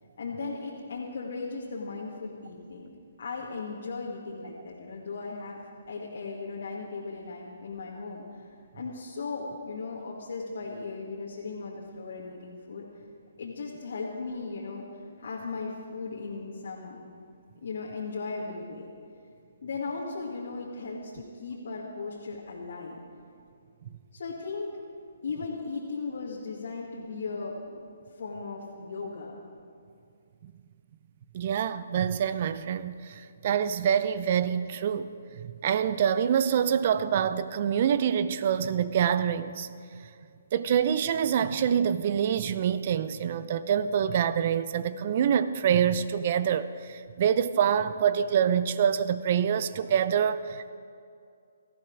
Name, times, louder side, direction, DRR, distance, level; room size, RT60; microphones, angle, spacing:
voice 1, 0.2-2.9 3.2-8.5 8.7-12.9 13.4-14.8 15.2-17.0 17.6-18.9 19.6-23.0 24.1-24.7 25.2-27.8 28.2-29.4, left 4 dB, 65° left, -5 dB, 2.1 m, -37 dB
voice 2, 31.3-39.7 40.5-50.7, right 8 dB, 45° right, 14 dB, 0.7 m, -26 dB
17.5 x 14.0 x 4.8 m, 2.4 s
hypercardioid pair, 140°, 0 cm